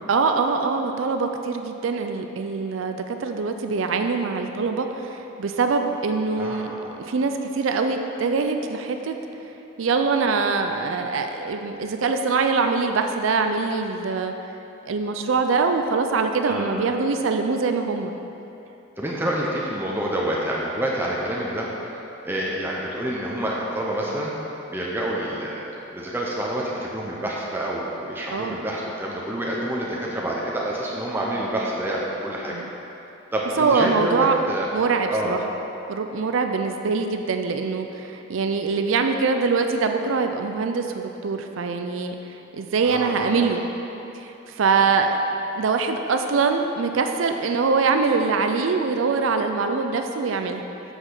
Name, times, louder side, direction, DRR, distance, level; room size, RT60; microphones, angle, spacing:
voice 1, 0.1-9.2 9.8-14.3 14.9-18.1 28.3-28.5 32.5-32.7 33.6-34.4 34.7-35.4 35.9-42.2 42.5-43.7 44.1-45.2 45.6-50.6, right 4 dB, 75° right, 6 dB, 0.4 m, -23 dB
voice 2, 6.4-7.0 16.5-16.8 19.0-21.7 22.2-24.3 24.7-32.5 33.3-34.7 35.1-35.4 42.8-43.5, right 1 dB, 10° right, -4 dB, 0.7 m, -28 dB
7.9 x 6.2 x 3.9 m, 3.0 s
head